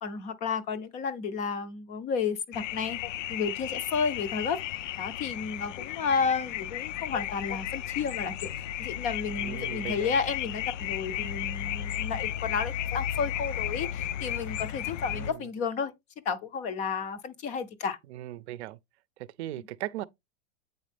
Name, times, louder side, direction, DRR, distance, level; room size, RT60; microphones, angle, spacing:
voice 1, 0.0-3.0 3.3-4.6 5.0-15.9 16.3-18.0, left 5 dB, 20° left, 0.5 m, -32 dB
sound 1, 2.5-15.3, left 11 dB, 75° left, 0.6 m, -34 dB
voice 2, 9.4-10.1 15.1-15.4 18.1-18.8 19.4-20.0, right 14 dB, 60° right, 0.6 m, -38 dB
8.2 x 4.1 x 3.3 m
supercardioid pair, 150°, 38 cm